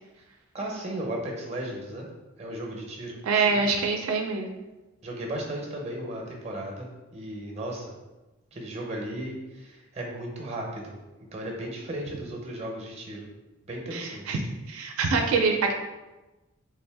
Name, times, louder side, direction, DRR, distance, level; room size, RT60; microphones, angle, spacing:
voice 1, 0.5-2.1 2.4-3.6 5.0-6.9 7.1-7.9 8.5-11.0 11.3-13.2 13.6-14.4, right 1 dB, 30° right, 0 dB, 0.6 m, -35 dB
voice 2, 3.2-4.5 13.9-14.4 14.7-15.7, right 4 dB, 80° right, 3 dB, 0.4 m, -25 dB
3.6 x 2.6 x 3.4 m, 1.1 s
head